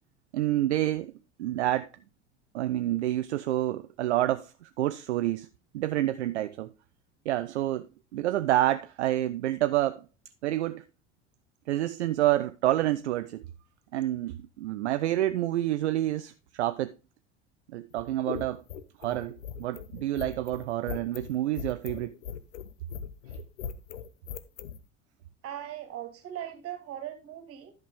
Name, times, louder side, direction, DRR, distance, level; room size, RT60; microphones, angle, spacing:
voice 1, 0.3-1.1 1.4-1.9 2.5-5.5 5.7-6.7 7.3-7.9 8.1-10.0 10.4-10.9 11.7-13.4 13.9-16.9 17.7-18.6 19.0-22.1, right 14 dB, 70° right, 0.5 m, -28 dB
sound 1, 17.9-24.8, left 8 dB, 70° left, 0.7 m, -39 dB
voice 2, 25.4-27.7, right 11 dB, 40° right, 1.9 m, -39 dB
11.0 x 5.9 x 3.4 m
figure-of-eight pair, 65°, 35 cm